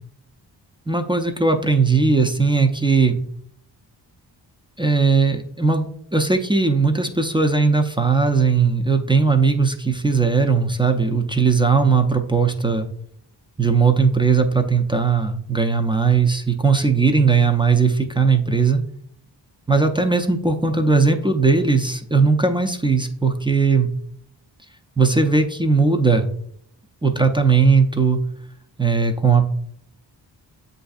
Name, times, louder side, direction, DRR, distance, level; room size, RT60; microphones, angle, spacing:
voice 1, 0.9-3.2 4.8-5.9 6.1-12.9 13.6-18.8 19.7-23.9 25.0-26.3 27.0-28.2 28.8-29.5, right 4 dB, 10° right, 5 dB, 0.4 m, -18 dB
7.5 x 2.6 x 2.4 m, 0.66 s
cardioid pair, 50°, 45 cm